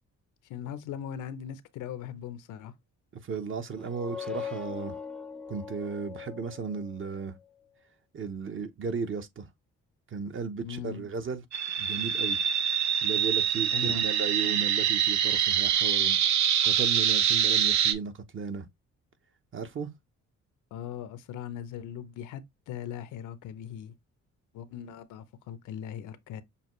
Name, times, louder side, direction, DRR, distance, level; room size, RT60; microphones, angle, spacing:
voice 1, 0.5-2.7 10.6-11.0 13.7-14.0 20.7-23.9 24.5-26.4, left 9 dB, 85° left, 0.7 m, -39 dB
voice 2, 3.1-5.0 5.5-7.4 8.1-9.5 10.1-11.4 11.8-12.4 13.0-16.2 16.6-18.7 19.5-19.9, right 5 dB, 40° right, 0.9 m, -35 dB
sound 1, 3.7-7.3, left 6 dB, 5° left, 0.5 m, -41 dB
sound 2, 11.5-17.9, right 9 dB, 70° right, 0.8 m, -25 dB
6.8 x 2.4 x 3.1 m
cardioid pair, 90°, 30 cm